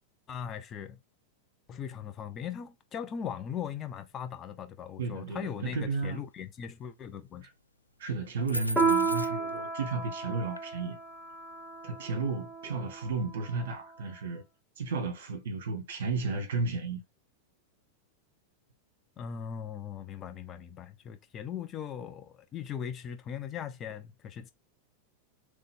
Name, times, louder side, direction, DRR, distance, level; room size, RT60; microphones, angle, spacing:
voice 1, 0.3-1.0 1.7-7.5 19.2-24.5, left 8 dB, 25° left, 0.7 m, -39 dB
voice 2, 5.0-6.2 7.4-7.5 8.0-11.0 11.8-14.4 14.8-17.0, right 3 dB, 55° right, 1.6 m, -33 dB
sound 1, 8.5-9.6 10.6-10.7, equal, 85° left, 0.3 m, -36 dB
Piano, 8.8-13.7, right 4 dB, 5° right, 1.0 m, -32 dB
3.8 x 3.3 x 3.5 m
figure-of-eight pair, 90°, 0 cm